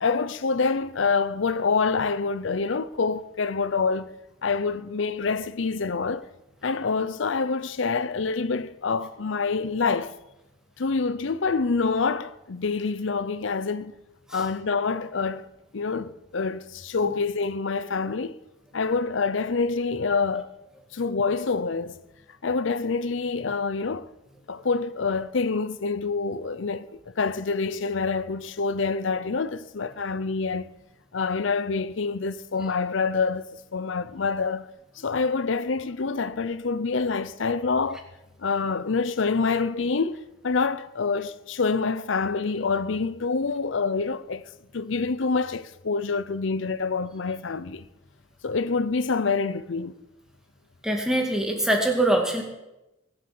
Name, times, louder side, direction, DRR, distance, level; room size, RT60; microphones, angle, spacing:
voice 1, 0.0-4.2 4.4-6.3 6.6-10.2 10.8-13.9 14.3-15.5 15.7-18.4 18.7-20.5 20.9-22.0 22.4-24.1 24.5-30.7 31.1-34.7 35.0-38.0 38.4-44.4 44.7-47.9 48.4-49.9, left 4 dB, 75° left, 0.6 m, -26 dB
voice 2, 50.8-52.4, right 1 dB, 5° right, 2.3 m, -23 dB
22.5 x 7.9 x 7.7 m
head